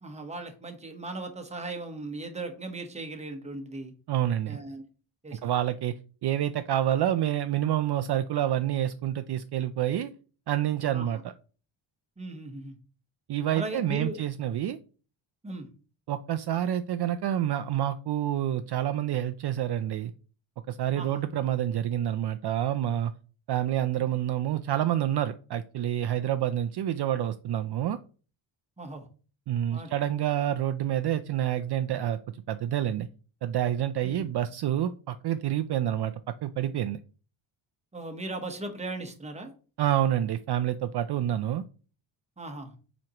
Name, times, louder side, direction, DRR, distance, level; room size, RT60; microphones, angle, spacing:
voice 1, 0.0-3.9 4.5-4.8 5.2-5.5 10.9-11.2 12.2-12.8 13.5-14.2 15.4-15.7 20.9-21.2 28.8-29.1 29.7-29.9 34.0-34.3 37.9-39.5 42.4-42.7, right 2 dB, 15° right, 5 dB, 1.0 m, -38 dB
voice 2, 4.1-4.6 5.3-5.9 6.2-10.1 10.5-11.2 13.3-14.8 16.1-20.1 20.7-23.1 23.5-28.0 29.5-32.2 32.5-33.1 33.4-36.1 36.4-37.0 39.8-41.6, right 11 dB, 55° right, 10 dB, 0.5 m, -28 dB
7.6 x 5.2 x 2.9 m, 0.38 s
wide cardioid pair, 150°, 49 cm